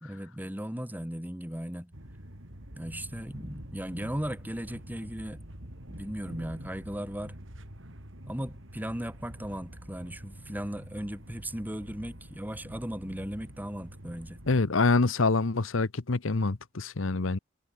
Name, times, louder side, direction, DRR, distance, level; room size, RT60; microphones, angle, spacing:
voice 1, 0.0-1.9 2.8-5.5 5.9-7.4 8.3-14.4, equal, 10° right, 2.8 m, -37 dB
sound 1, 1.9-14.6, equal, 70° right, 5.9 m, -46 dB
voice 2, 14.5-17.4, left 3 dB, 80° left, 1.0 m, -26 dB
head